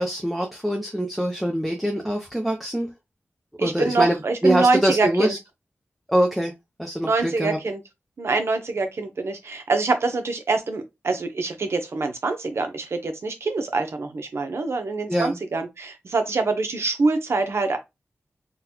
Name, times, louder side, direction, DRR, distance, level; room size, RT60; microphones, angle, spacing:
voice 1, 0.0-2.9 3.6-4.2 4.4-5.4 6.1-6.5 6.8-7.6 15.1-15.4, equal, 5° right, 0.6 m, -23 dB
voice 2, 3.6-5.3 7.0-7.8 8.2-17.8, right 3 dB, 65° right, 0.7 m, -25 dB
3.9 x 2.3 x 2.8 m
wide cardioid pair, 95°, 5 cm